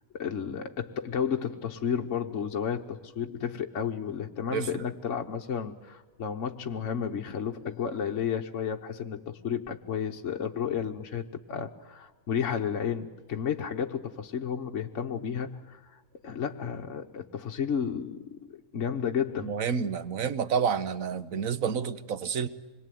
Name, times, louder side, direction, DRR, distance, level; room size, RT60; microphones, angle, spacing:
voice 1, 0.1-19.6, left 7 dB, 60° left, 1.3 m, -32 dB
voice 2, 19.4-22.5, right 6 dB, 65° right, 1.4 m, -29 dB
26.0 x 22.0 x 9.2 m
omnidirectional pair, 1.6 m